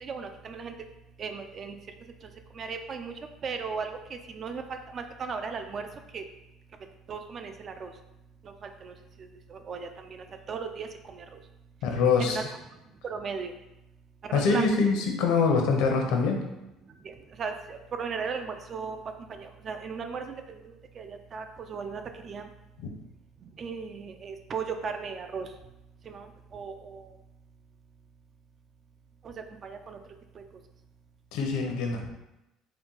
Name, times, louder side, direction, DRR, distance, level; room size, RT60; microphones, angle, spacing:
voice 1, 0.0-0.7 1.2-1.8 2.5-3.1 3.4-5.9 6.1-6.2 7.1-7.9 8.4-8.9 9.2-11.4 12.2-12.4 13.0-13.5 14.2-14.9 17.0-19.0 19.3-22.5 23.4-25.5 26.0-27.1 29.2-29.3 29.6-30.0 30.3-30.4, right 5 dB, 35° right, 6 dB, 0.4 m, -37 dB
voice 2, 11.8-12.4 14.3-16.4 22.8-22.9 31.3-32.1, left 4 dB, 75° left, 2 dB, 0.8 m, -24 dB
4.3 x 2.2 x 3.9 m, 0.93 s
cardioid pair, 150°, 0 cm